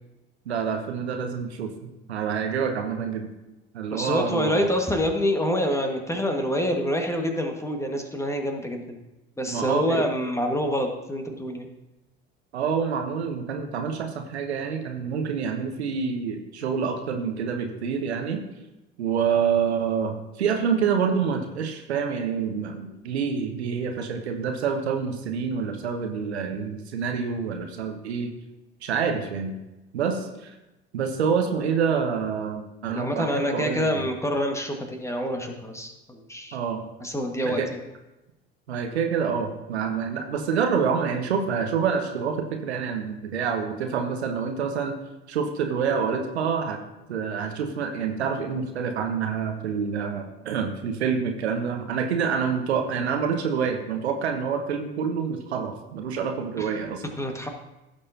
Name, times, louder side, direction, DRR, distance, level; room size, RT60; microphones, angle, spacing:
voice 1, 0.5-1.7 2.1-3.3 3.7-4.7 9.5-10.1 12.5-18.4 19.0-28.3 28.8-29.5 29.9-30.6 30.9-34.1 36.5-36.8 37.4-37.7 38.7-44.9 45.3-46.8 47.1-57.0, right 6 dB, 80° right, 5 dB, 1.0 m, -27 dB
voice 2, 3.9-9.0 9.4-11.7 32.9-36.6 37.0-37.8 56.6-56.7 57.2-57.5, equal, 10° left, 3 dB, 1.6 m, -27 dB
16.0 x 6.7 x 2.8 m, 0.99 s
figure-of-eight pair, 60°, 32 cm